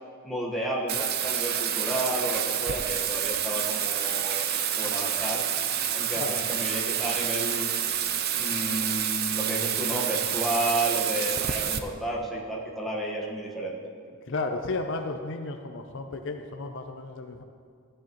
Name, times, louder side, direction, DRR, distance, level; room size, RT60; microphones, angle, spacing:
voice 1, 0.2-4.5 4.8-5.4 5.9-7.7 8.4-13.9, right 1 dB, ahead, -4 dB, 1.3 m, -31 dB
Bathtub (filling or washing), 0.9-11.8, right 9 dB, 45° right, 0.5 m, -28 dB
voice 2, 14.3-17.4, left 3 dB, 55° left, 5 dB, 0.6 m, -33 dB
14.0 x 10.0 x 3.0 m, 2.2 s
head